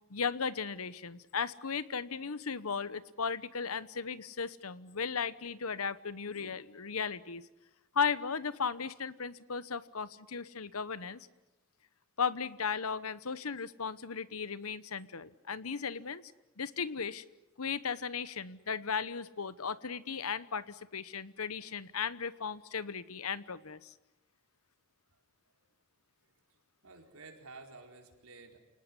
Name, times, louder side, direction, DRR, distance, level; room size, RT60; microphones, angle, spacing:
voice 1, 0.1-7.4 7.9-11.3 12.2-16.2 16.6-17.2 17.6-23.9, left 6 dB, 85° left, 16 dB, 1.1 m, -36 dB
voice 2, 26.8-28.6, right 3 dB, 85° right, 3 dB, 4.6 m, -52 dB
28.5 x 19.0 x 10.0 m, 1.0 s
head